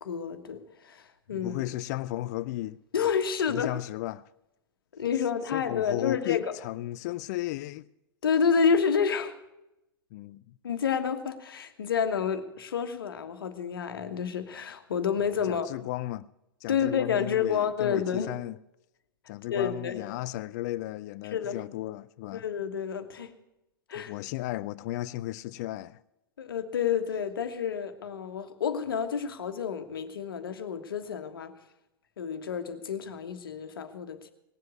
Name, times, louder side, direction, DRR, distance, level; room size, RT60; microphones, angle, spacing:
voice 1, 0.0-1.6 2.9-3.7 4.9-6.4 8.2-9.4 10.6-15.7 16.7-18.3 19.5-20.0 21.3-21.6 22.3-23.3 23.9-24.1 26.4-31.5 32.2-34.3, left 7 dB, 75° left, 1.5 m, -29 dB
voice 2, 1.4-2.8 3.5-4.2 5.5-7.9 10.1-10.4 15.5-16.3 16.6-18.6 19.3-22.4 24.0-26.0, left 16 dB, 50° left, 0.4 m, -34 dB
18.5 x 7.8 x 8.2 m
figure-of-eight pair, 100°, 12 cm